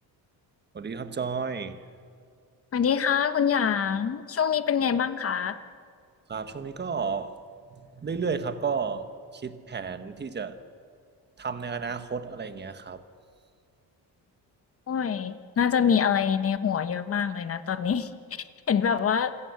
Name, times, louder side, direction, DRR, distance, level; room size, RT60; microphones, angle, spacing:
voice 1, 0.7-1.8 6.3-7.4 7.8-10.6 11.4-13.0, right 5 dB, 25° right, 9 dB, 1.4 m, -32 dB
voice 2, 2.7-5.6 14.9-19.3, left 7 dB, 35° left, 11 dB, 1.2 m, -25 dB
27.5 x 15.5 x 8.2 m, 2.2 s
cardioid pair, 130°, 39 cm